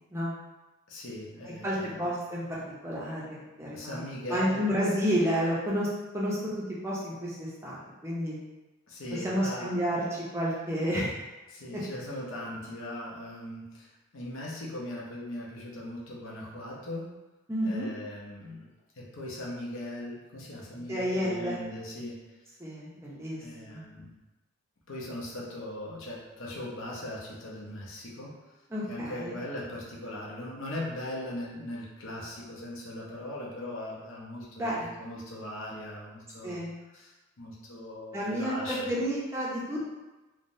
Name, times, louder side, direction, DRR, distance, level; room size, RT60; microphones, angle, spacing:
voice 1, 0.9-2.1 3.7-4.8 8.9-9.8 11.5-17.2 17.6-18.7 19.0-22.2 23.4-24.2 24.9-28.4 28.9-36.6 36.9-38.9, left 1 dB, 70° left, -4 dB, 0.7 m, -39 dB
voice 2, 1.6-4.0 4.3-5.9 6.1-8.4 9.2-10.0 10.3-11.1 11.7-11.8 17.5-17.9 20.9-21.6 22.6-23.8 28.7-29.3 34.6-34.9 36.4-36.7 38.1-40.0, equal, 10° right, -7 dB, 0.5 m, -30 dB
3.3 x 2.1 x 2.6 m, 1.1 s
head